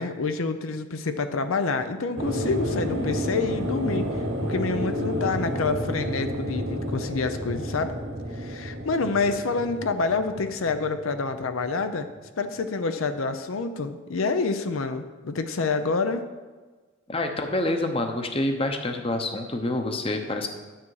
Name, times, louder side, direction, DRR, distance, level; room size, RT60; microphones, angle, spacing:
voice 1, 0.0-4.1 4.4-7.9 8.3-12.1 12.4-16.2, left 4 dB, 85° left, 9 dB, 0.6 m, -27 dB
sound 1, 2.2-11.4 11.7-11.8, equal, 80° right, 2.0 m, -30 dB
voice 2, 17.1-20.5, left 2 dB, 30° left, 5 dB, 0.8 m, -27 dB
10.0 x 7.0 x 4.8 m, 1.4 s
head